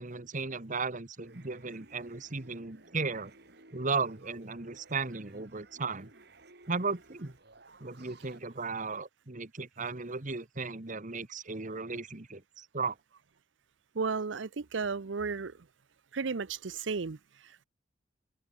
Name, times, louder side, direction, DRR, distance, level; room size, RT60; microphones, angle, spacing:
voice 1, 0.0-3.3 3.7-6.1 6.7-7.3 7.8-12.9, right 4 dB, 45° right, 1.5 m, -35 dB
sound 1, 1.2-8.4, right 2 dB, 60° right, 7.3 m, -57 dB
voice 2, 13.9-15.5 16.1-17.2, right 4 dB, 75° right, 0.7 m, -33 dB
open air
head